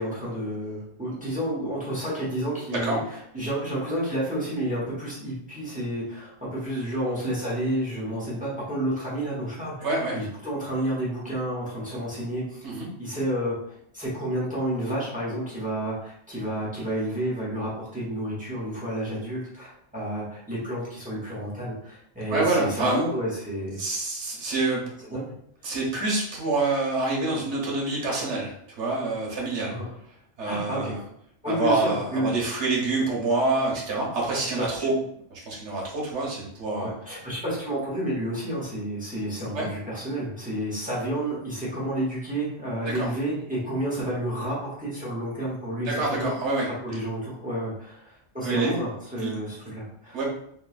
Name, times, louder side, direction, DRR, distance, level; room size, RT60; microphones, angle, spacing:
voice 1, 0.0-12.7 13.0-23.8 25.1-25.3 25.6-25.7 29.7-29.8 30.4-30.9 31.4-32.3 34.3-34.9 36.8-46.3 46.8-50.2, right 1 dB, 10° right, -8 dB, 0.9 m, -30 dB
voice 2, 9.8-10.2 12.6-12.9 22.3-23.1 23.8-24.9 25.6-29.8 30.4-31.0 31.4-34.9 35.3-36.9 39.5-39.7 42.9-43.1 45.9-47.0 48.4-48.8 49.2-49.3 50.1-50.2, right 2 dB, 85° right, -3 dB, 1.2 m, -27 dB
3.1 x 2.2 x 2.4 m, 0.70 s
omnidirectional pair, 1.1 m